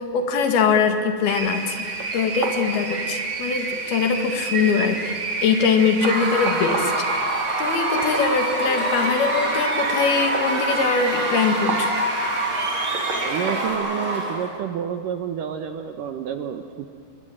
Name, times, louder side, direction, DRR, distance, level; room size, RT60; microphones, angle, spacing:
voice 1, 0.0-1.9 2.1-5.0 5.4-6.9 7.6-11.9, left 5 dB, 65° left, 6 dB, 3.7 m, -22 dB
sound 1, 1.3-13.7, right 4 dB, 45° right, 3.7 m, -29 dB
Screaming / Cheering / Crowd, 6.0-14.6, right 1 dB, 25° right, 3.8 m, -26 dB
voice 2, 13.2-16.9, right 8 dB, 70° right, 7 dB, 2.2 m, -29 dB
29.0 x 22.0 x 9.1 m, 2.2 s
omnidirectional pair, 5.0 m